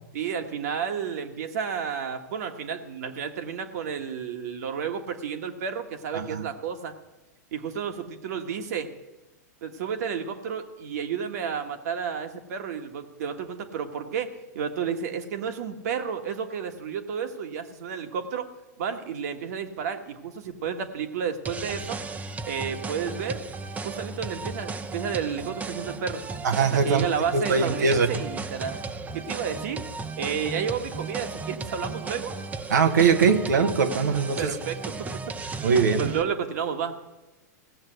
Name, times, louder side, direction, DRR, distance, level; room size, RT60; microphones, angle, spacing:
voice 1, 0.1-6.9 7.5-8.9 9.6-14.3 14.5-18.5 18.8-22.0 22.5-23.4 23.8-26.2 26.7-28.8 29.1-29.8 30.2-32.4 34.1-35.7 35.9-36.9, right 7 dB, 65° right, 1.7 m, -31 dB
voice 2, 6.1-6.5 26.4-27.1 27.3-28.2 32.7-34.6 35.6-36.0, right 5 dB, 80° right, 1.1 m, -22 dB
sound 1, 21.4-36.2, right 3 dB, 15° right, 0.8 m, -35 dB
16.5 x 7.3 x 8.0 m
hypercardioid pair, 115°, 9 cm